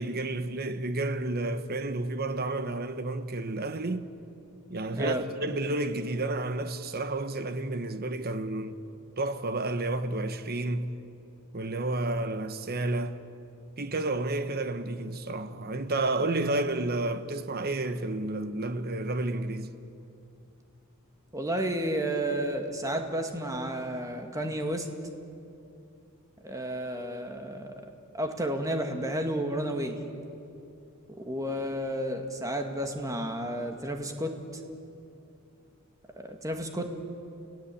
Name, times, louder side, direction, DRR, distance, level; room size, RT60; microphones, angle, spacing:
voice 1, 0.0-4.1 4.7-8.7 9.2-10.9 11.5-13.2 13.8-19.7, right 2 dB, 45° right, 1.1 m, -31 dB
voice 2, 21.3-24.9 26.4-27.7 28.1-30.0 31.1-34.3 36.2-36.9, right 1 dB, 15° right, 1.9 m, -31 dB
29.5 x 17.5 x 8.5 m
head